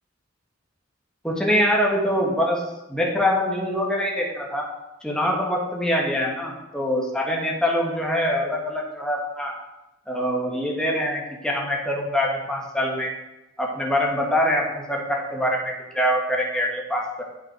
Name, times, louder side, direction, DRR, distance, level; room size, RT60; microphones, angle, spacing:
voice 1, 1.2-2.6 2.9-4.7 5.0-9.5 10.1-13.1 13.6-17.2, equal, 5° left, -2 dB, 1.6 m, -24 dB
9.2 x 6.1 x 4.9 m, 0.96 s
head